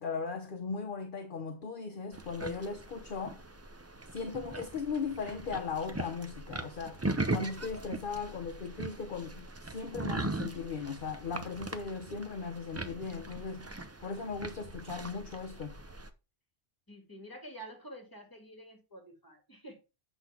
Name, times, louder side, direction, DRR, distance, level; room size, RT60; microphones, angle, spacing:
voice 1, 0.0-3.4 4.1-7.0 7.3-13.7 14.0-15.8, left 5 dB, 50° left, 1.0 m, -38 dB
sound 1, 2.1-16.1, right 2 dB, 20° right, 0.5 m, -40 dB
voice 2, 16.9-19.8, right 1 dB, 20° left, 2.4 m, -48 dB
7.9 x 6.0 x 3.4 m
omnidirectional pair, 1.1 m